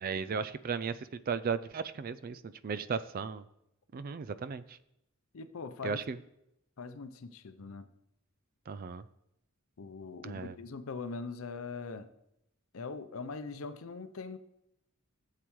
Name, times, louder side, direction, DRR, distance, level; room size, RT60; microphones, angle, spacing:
voice 1, 0.0-3.5 3.9-4.8 5.8-6.2 8.7-9.0 10.2-10.6, right 5 dB, 45° right, 0.4 m, -36 dB
voice 2, 5.3-6.0 6.8-7.9 9.8-12.1 12.7-14.4, left 4 dB, 75° left, 0.6 m, -41 dB
13.5 x 7.6 x 3.1 m
head